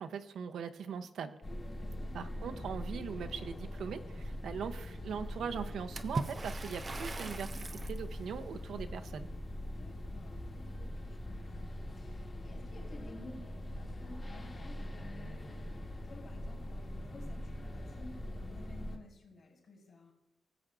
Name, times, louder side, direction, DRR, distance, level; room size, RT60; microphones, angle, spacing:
voice 1, 0.0-1.4 2.1-7.5 7.9-9.3, right 7 dB, 85° right, 8 dB, 0.6 m, -40 dB
sound 1, 1.4-19.0, left 1 dB, 30° left, 1.2 m, -42 dB
voice 2, 1.7-2.3 9.7-11.7 12.0-15.6 16.0-20.1, left 2 dB, 55° left, -2 dB, 3.7 m, -54 dB
Water / Splash splatter, 6.0-8.0, right 3 dB, 25° right, 0.5 m, -40 dB
18.5 x 7.7 x 2.4 m, 0.93 s
wide cardioid pair, 155°, 0 cm